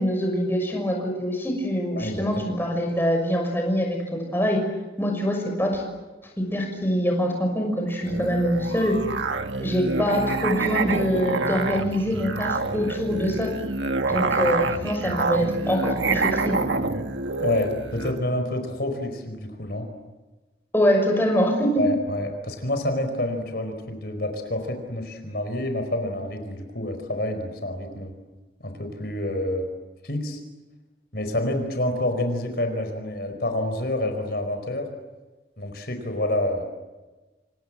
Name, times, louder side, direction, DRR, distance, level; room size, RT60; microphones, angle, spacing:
voice 1, 0.0-4.6 5.0-5.8 6.4-9.0 9.6-13.5 14.0-16.6 20.7-21.8, equal, 10° left, 2 dB, 6.3 m, -24 dB
voice 2, 2.0-2.4 17.3-19.9 21.8-28.1 28.6-29.7 30.0-30.4 31.1-34.9 35.6-36.6, left 1 dB, 55° left, 6 dB, 4.7 m, -28 dB
Musical instrument, 8.0-18.2, right 3 dB, 80° right, 1.6 m, -27 dB
29.0 x 27.5 x 7.5 m, 1.2 s
head